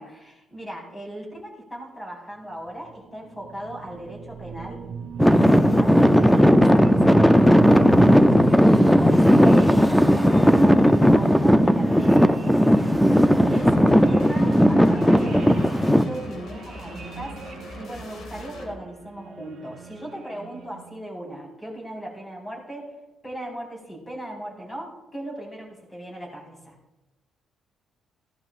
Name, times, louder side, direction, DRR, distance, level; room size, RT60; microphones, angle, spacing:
voice 1, 0.0-4.8 5.2-8.3 8.8-12.9 13.5-23.0 23.2-26.8, right 1 dB, 20° left, -2 dB, 4.5 m, -38 dB
sound 1, 2.7-21.1, right 6 dB, 60° right, 1.3 m, -37 dB
Traffic noise roadway noise / Engine, 5.2-16.0, equal, 5° left, 0.5 m, -16 dB
sound 2, 13.5-18.7, left 2 dB, 65° left, 2.2 m, -41 dB
16.0 x 11.5 x 2.5 m, 1.0 s
cardioid pair, 110°, 0 cm